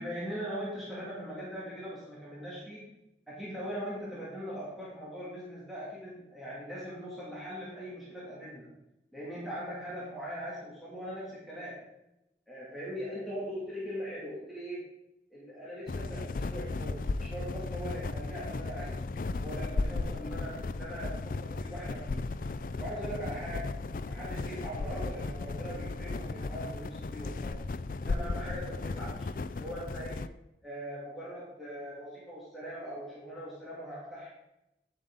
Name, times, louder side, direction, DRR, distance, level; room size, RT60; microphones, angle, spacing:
voice 1, 0.0-2.9 3.3-8.7 9.1-11.8 12.5-14.9 15.3-19.0 19.4-22.2 22.8-23.7 24.1-27.5 28.0-30.2 30.6-34.3, equal, ahead, -8 dB, 2.7 m, -40 dB
sound 1, 15.9-30.3, left 3 dB, 50° left, 0.4 m, -35 dB
9.9 x 7.4 x 4.0 m, 0.87 s
head